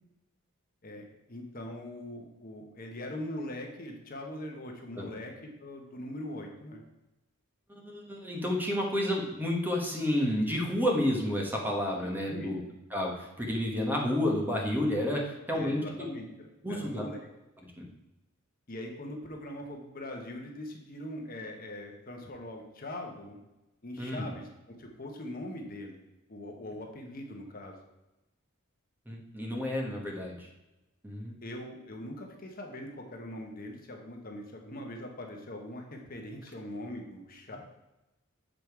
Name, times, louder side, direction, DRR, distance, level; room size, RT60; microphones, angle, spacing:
voice 1, 0.8-6.8 11.9-12.5 15.5-17.3 18.7-23.4 23.8-26.0 26.3-27.8 31.4-37.6, left 1 dB, 40° left, 2 dB, 1.0 m, -42 dB
voice 2, 7.7-12.6 12.9-16.1 16.6-17.0 17.8-17.9 24.0-24.3 29.1-30.5 31.0-31.3, left 1 dB, 10° right, -1 dB, 1.2 m, -30 dB
7.6 x 5.1 x 4.7 m, 0.98 s
head